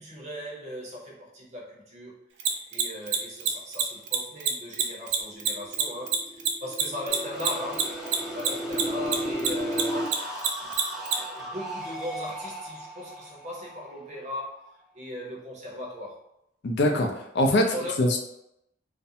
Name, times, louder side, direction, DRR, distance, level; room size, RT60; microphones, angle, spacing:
voice 1, 0.0-2.2 2.7-8.0 8.3-10.3 11.4-16.2 17.7-18.2, left 1 dB, 40° right, -3 dB, 0.7 m, -38 dB
Mechanisms, 2.4-9.1 9.4-11.1, right 9 dB, 65° right, 0.4 m, -24 dB
sound 1, 5.3-10.0, equal, 40° left, 1.0 m, -34 dB
sound 2, 7.1-14.8, equal, ahead, 0.5 m, -39 dB
voice 2, 16.6-17.7 18.0-18.2, left 1 dB, 60° left, 2 dB, 0.4 m, -22 dB
2.5 x 2.1 x 2.7 m, 0.79 s
head